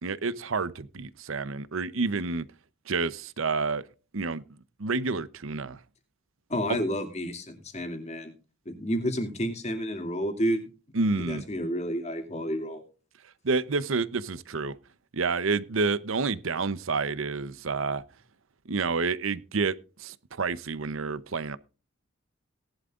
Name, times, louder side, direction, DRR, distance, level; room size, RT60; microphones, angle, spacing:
voice 1, 0.0-2.5 2.9-3.8 4.1-4.4 4.8-5.8 6.7-6.8 10.9-11.4 13.4-14.7 15.1-18.0 18.7-21.6, right 4 dB, 75° right, 0.8 m, -29 dB
voice 2, 6.5-8.3 8.7-10.7 11.2-12.8, equal, 35° left, 2.5 m, -30 dB
18.0 x 11.5 x 2.5 m
head